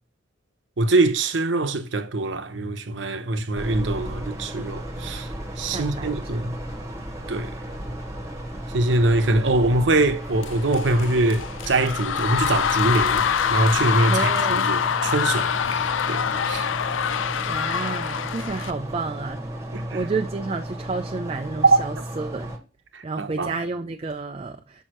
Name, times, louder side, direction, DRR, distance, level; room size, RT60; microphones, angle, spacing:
voice 1, 0.8-5.3 5.6-6.5 7.3-7.6 8.7-13.2 13.5-16.7 19.7-20.0 21.6-21.8 22.9-23.5, right 2 dB, 75° right, 0.8 m, -23 dB
sound 1, 3.5-22.6, right 1 dB, 15° right, 1.2 m, -34 dB
voice 2, 5.7-6.4 14.1-14.6 17.5-22.5 23.0-24.8, right 3 dB, 30° right, 0.4 m, -31 dB
sound 2, 10.4-18.7, left 7 dB, 90° left, 0.4 m, -25 dB
6.3 x 5.5 x 3.0 m
head